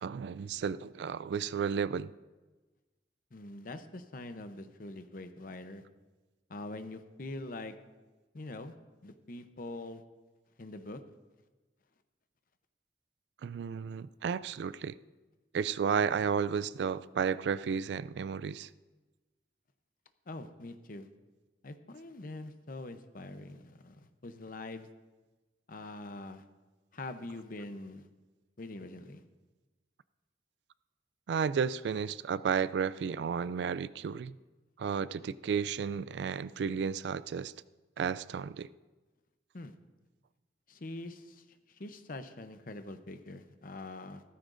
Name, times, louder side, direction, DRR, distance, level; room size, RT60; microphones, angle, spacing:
voice 1, 0.0-2.1 13.4-15.0 15.5-18.7 31.3-34.3 34.8-37.5 38.0-38.7, right 6 dB, 70° right, 17 dB, 0.3 m, -32 dB
voice 2, 3.3-5.8 6.5-7.7 8.3-8.7 9.0-10.0 10.6-11.0 20.3-21.1 21.6-24.9 25.7-26.4 26.9-28.1 28.6-29.2 39.5-39.7 40.7-44.2, left 2 dB, 50° left, 9 dB, 0.7 m, -44 dB
16.0 x 14.0 x 2.6 m, 1.2 s
head